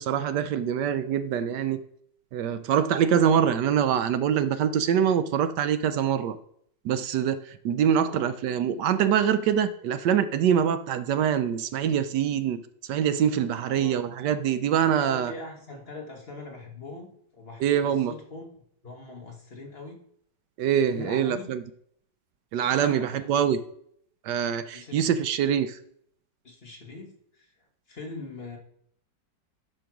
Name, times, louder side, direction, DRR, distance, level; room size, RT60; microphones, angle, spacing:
voice 1, 0.0-1.8 2.3-6.4 6.8-12.6 12.9-15.3 17.6-18.1 20.6-21.6 22.5-23.6 24.2-25.8, right 8 dB, 75° right, 11 dB, 1.2 m, -24 dB
voice 2, 13.7-14.1 15.0-17.1 17.3-20.0 20.8-21.5 22.7-23.3 24.7-25.1 26.4-28.6, left 2 dB, 35° left, 1 dB, 1.3 m, -42 dB
10.5 x 4.5 x 6.0 m, 0.68 s
omnidirectional pair, 1.9 m